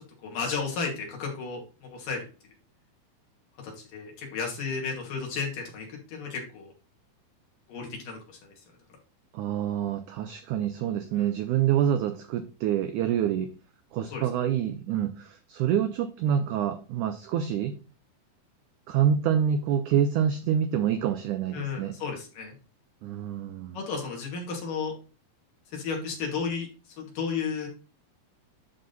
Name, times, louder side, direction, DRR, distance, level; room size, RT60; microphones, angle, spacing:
voice 1, 0.2-2.2 3.6-6.7 7.7-8.5 11.2-11.3 14.1-14.2 21.5-22.5 23.7-24.9 25.7-26.7 27.0-27.7, left 5 dB, 65° left, 0 dB, 3.9 m, -33 dB
voice 2, 9.3-13.5 13.9-17.8 18.9-22.0 23.0-23.8, right 9 dB, 85° right, 8 dB, 1.7 m, -27 dB
11.0 x 3.8 x 4.0 m, 0.35 s
omnidirectional pair, 4.3 m